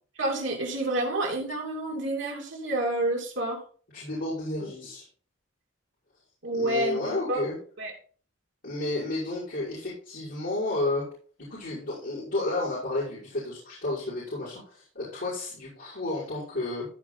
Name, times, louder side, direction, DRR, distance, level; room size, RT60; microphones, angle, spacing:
voice 1, 0.2-3.6 6.4-7.4 7.8-7.9, right 1 dB, 60° right, -1 dB, 2.9 m, -29 dB
voice 2, 3.9-5.0 6.5-7.5 8.6-11.1 11.4-16.9, left 2 dB, 55° left, -10 dB, 5.7 m, -31 dB
15.5 x 5.2 x 4.1 m, 0.42 s
head